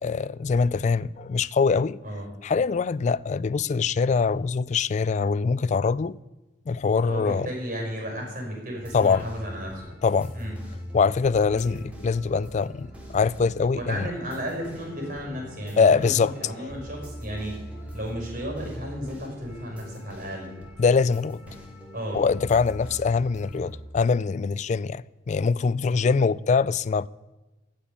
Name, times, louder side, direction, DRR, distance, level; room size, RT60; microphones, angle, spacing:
voice 1, 0.0-2.0 2.4-6.2 6.7-7.5 8.9-9.2 10.0-10.3 10.9-14.1 15.8-16.3 20.8-21.4 22.1-27.1, left 5 dB, 40° left, 0.3 m, -23 dB
voice 2, 7.1-9.9 10.3-10.5 11.5-11.8 13.8-17.6 17.9-20.5 21.9-22.2 25.8-26.1, equal, 50° right, 5.4 m, -34 dB
sound 1, 8.8-23.8, equal, 10° right, 2.9 m, -42 dB
15.0 x 5.5 x 9.6 m
head